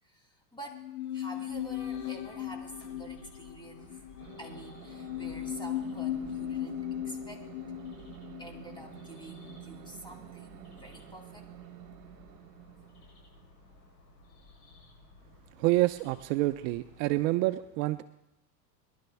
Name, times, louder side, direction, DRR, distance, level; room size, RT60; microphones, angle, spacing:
voice 1, 0.0-7.5 8.4-11.5 14.8-15.1, right 1 dB, 10° left, 1 dB, 2.8 m, -48 dB
sound 1, 0.7-10.0 10.3-10.4, left 11 dB, 70° left, 1.3 m, -38 dB
sound 2, 1.5-17.1, left 3 dB, 50° left, 7.0 m, -56 dB
sound 3, 4.2-15.3, right 14 dB, 70° right, 1.1 m, -51 dB
voice 2, 15.6-18.0, right 19 dB, 55° right, 11 dB, 0.7 m, -27 dB
22.5 x 11.5 x 3.5 m, 0.87 s
hypercardioid pair, 110°, 49 cm